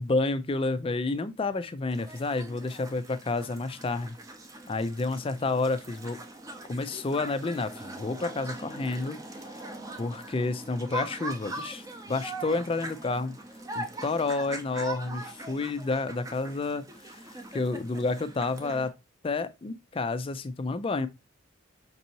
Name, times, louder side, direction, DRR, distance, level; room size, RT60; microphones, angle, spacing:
voice 1, 0.0-4.2 4.7-6.2 6.7-9.7 10.0-13.4 13.7-18.9 19.2-21.1, left 3 dB, 25° left, 0.3 m, -30 dB
sound 1, 1.9-18.9, right 2 dB, 15° right, 0.6 m, -41 dB
5.3 x 2.7 x 2.7 m
head